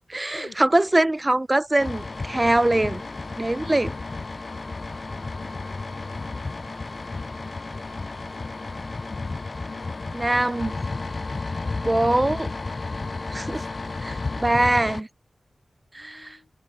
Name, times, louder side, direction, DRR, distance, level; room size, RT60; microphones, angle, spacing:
voice 1, 0.1-3.0 3.4-3.9 10.1-10.7 11.8-12.5 13.3-13.6 14.0-15.1 15.9-16.4, right 1 dB, 30° right, 0.5 m, -22 dB
sound 1, 1.8-15.0, left 3 dB, 55° left, 0.4 m, -32 dB
voice 2, 2.3-2.8 3.2-3.3 5.3-6.6 7.1-7.8 8.3-10.1 13.5-13.8 14.1-14.2 16.0-16.5, left 5 dB, 85° left, 3.9 m, -50 dB
cardioid pair, 40°, 0 cm